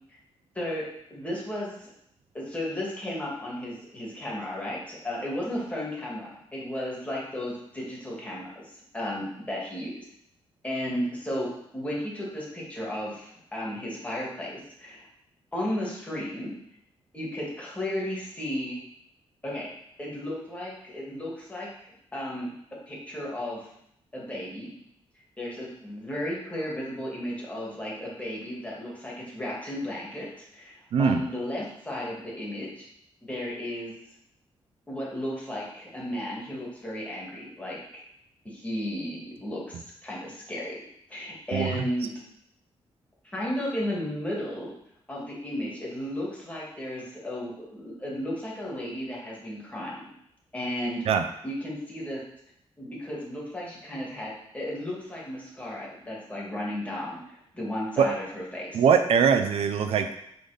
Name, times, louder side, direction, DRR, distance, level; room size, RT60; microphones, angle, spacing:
voice 1, 1.1-1.9 2.3-10.1 10.6-11.5 11.7-15.1 15.5-16.5 17.1-18.8 19.4-19.7 20.0-21.7 22.1-22.5 22.9-23.7 24.1-24.7 25.4-30.3 30.5-32.9 33.2-33.9 34.9-37.8 38.4-40.8 41.1-42.1 43.2-44.7 45.1-50.1 50.5-51.0 51.4-52.2 52.8-58.8, left 1 dB, 15° left, -5 dB, 2.2 m, -34 dB
voice 2, 30.9-31.2 41.5-41.7 51.1-51.2 58.0-58.1 58.7-60.1, right 6 dB, 80° right, 8 dB, 0.5 m, -22 dB
7.0 x 4.0 x 5.1 m, 0.75 s
wide cardioid pair, 130°, 10 cm